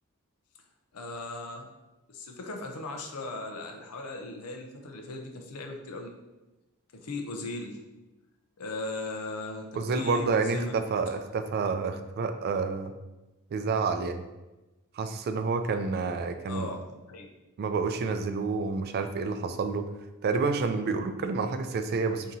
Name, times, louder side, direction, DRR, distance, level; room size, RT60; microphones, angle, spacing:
voice 1, 0.9-1.7 2.1-6.1 7.0-7.8 8.6-10.8 16.5-17.3, left 2 dB, 90° left, 3 dB, 0.6 m, -38 dB
voice 2, 9.8-12.9 13.5-14.3 14.9-16.7 17.6-19.9 20.2-22.4, right 4 dB, 45° right, 8 dB, 0.3 m, -29 dB
5.3 x 2.8 x 2.6 m, 1.0 s
head